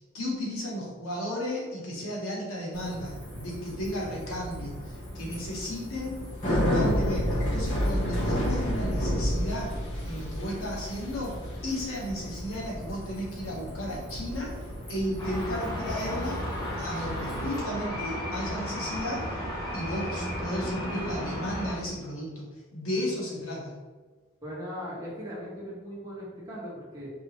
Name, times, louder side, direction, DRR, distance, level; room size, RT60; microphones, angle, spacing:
voice 1, 0.0-9.7 10.0-11.3 11.6-16.4 16.8-19.4 19.7-23.7, left 1 dB, 80° left, -4 dB, 1.1 m, -34 dB
Bicycle, 2.7-17.6, equal, 35° left, 1.4 m, -32 dB
sound 1, 15.2-21.8, equal, 20° left, 0.9 m, -33 dB
voice 2, 24.4-27.1, equal, 15° right, -8 dB, 1.2 m, -39 dB
4.5 x 2.9 x 3.0 m, 1.4 s
head